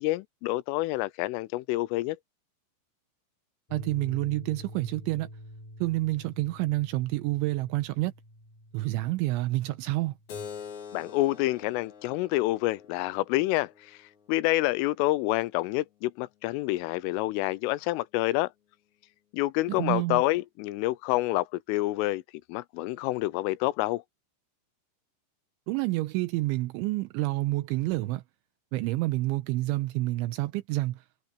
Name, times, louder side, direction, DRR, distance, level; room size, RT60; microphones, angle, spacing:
voice 1, 0.0-2.2 10.9-14.0 14.3-18.5 19.3-22.2 22.5-24.0, left 18 dB, 85° left, 3.3 m, -28 dB
sound 1, 3.7-10.8, equal, 10° left, 4.8 m, -47 dB
voice 2, 3.7-5.3 5.8-8.1 8.7-10.1 19.7-20.2 25.7-28.2 28.7-31.0, right 19 dB, 85° right, 3.0 m, -28 dB
Keyboard (musical), 10.3-15.4, left 6 dB, 50° left, 2.8 m, -46 dB
omnidirectional pair, 5.7 m